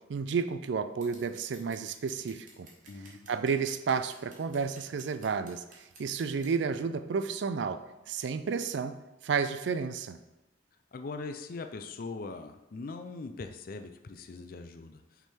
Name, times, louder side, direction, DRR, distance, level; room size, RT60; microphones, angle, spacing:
voice 1, 0.1-2.7 3.3-9.0 9.2-10.2, right 5 dB, 65° right, 11 dB, 0.4 m, -31 dB
Scissors, 1.0-6.5, right 3 dB, 45° right, 1.3 m, -54 dB
voice 2, 2.9-3.3 10.9-15.3, left 3 dB, 50° left, 7 dB, 0.4 m, -41 dB
5.8 x 3.8 x 4.3 m, 0.99 s
head